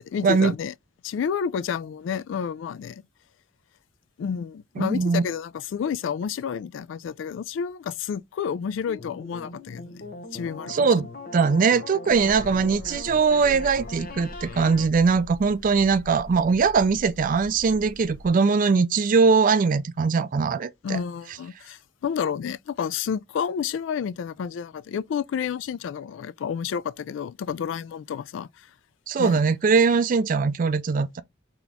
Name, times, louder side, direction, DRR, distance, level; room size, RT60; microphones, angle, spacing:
voice 1, 0.1-0.7 1.0-3.0 4.2-10.1 10.3-11.1 20.8-28.7 29.2-29.4, left 7 dB, 75° left, 0.3 m, -30 dB
voice 2, 4.8-5.2 10.7-21.0 29.1-31.2, right 5 dB, 45° right, 0.4 m, -21 dB
sound 1, 8.9-14.9, left 2 dB, 50° left, 0.8 m, -40 dB
sound 2, 12.1-18.3, equal, 10° left, 1.3 m, -43 dB
3.9 x 2.9 x 3.5 m
head